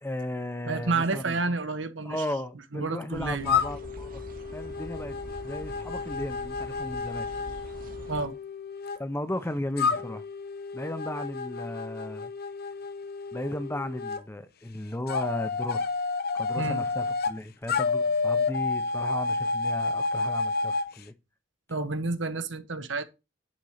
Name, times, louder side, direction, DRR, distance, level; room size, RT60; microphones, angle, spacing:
voice 1, 0.0-1.4 2.0-4.2 4.5-5.2 5.4-7.3 9.0-10.2 10.7-12.3 13.3-15.9 16.3-21.1, left 1 dB, 15° left, 0.8 m, -35 dB
voice 2, 0.7-2.2 2.7-3.5 8.1-8.3 16.5-16.8 21.7-23.0, right 3 dB, 70° right, 1.3 m, -30 dB
sound 1, 3.1-8.3, right 1 dB, 50° right, 1.4 m, -44 dB
sound 2, 3.4-9.0 9.8-14.2 15.1-17.3 17.7-20.9, left 4 dB, 55° left, 0.8 m, -30 dB
10.5 x 4.4 x 6.5 m
head